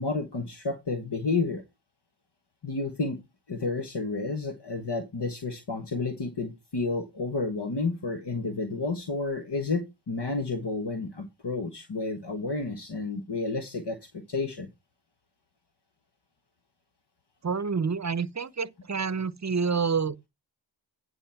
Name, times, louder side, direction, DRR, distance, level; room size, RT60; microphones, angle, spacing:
voice 1, 0.0-1.6 2.6-3.2 3.5-14.7, left 3 dB, 65° left, 1.4 m, -31 dB
voice 2, 17.4-20.3, right 5 dB, 40° right, 0.7 m, -28 dB
9.9 x 4.9 x 5.7 m
wide cardioid pair, 65°, 45 cm